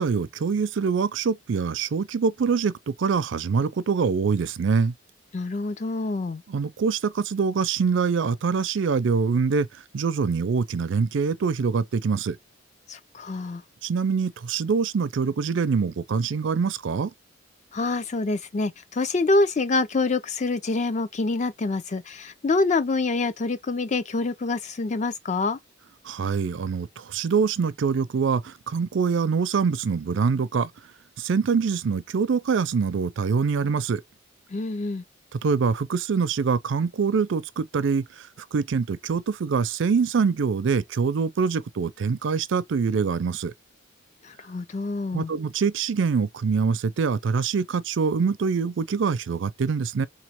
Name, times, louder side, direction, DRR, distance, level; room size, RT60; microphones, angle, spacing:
voice 1, 0.0-4.9 6.5-12.4 13.8-17.1 26.0-30.7 31.2-34.0 35.4-43.5 45.1-50.1, right 5 dB, 65° right, 0.4 m, -24 dB
voice 2, 5.3-6.4 12.9-13.6 17.7-25.6 34.5-35.0 44.2-45.3, left 3 dB, 35° left, 0.5 m, -26 dB
3.9 x 3.1 x 2.9 m
head